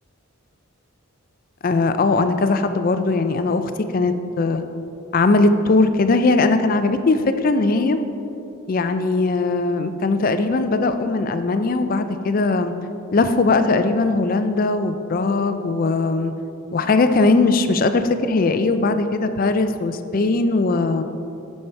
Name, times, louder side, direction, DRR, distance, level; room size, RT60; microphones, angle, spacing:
voice 1, 1.6-4.6 5.1-8.0 8.7-12.7 13.1-16.3 16.7-21.0, left 3 dB, 40° left, 9 dB, 0.4 m, -19 dB
9.0 x 5.5 x 4.4 m, 2.8 s
head